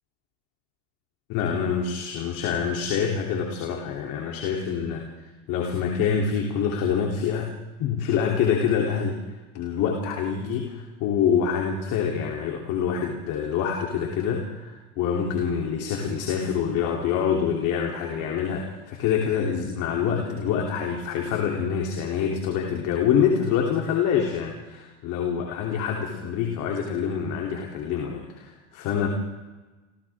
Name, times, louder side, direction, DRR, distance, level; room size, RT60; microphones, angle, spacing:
voice 1, 1.3-5.1 5.5-7.5 7.8-9.2 9.5-29.1, left 7 dB, 50° left, 0 dB, 3.3 m, -26 dB
29.0 x 28.5 x 3.7 m, 1.2 s
hypercardioid pair, 110°, 38 cm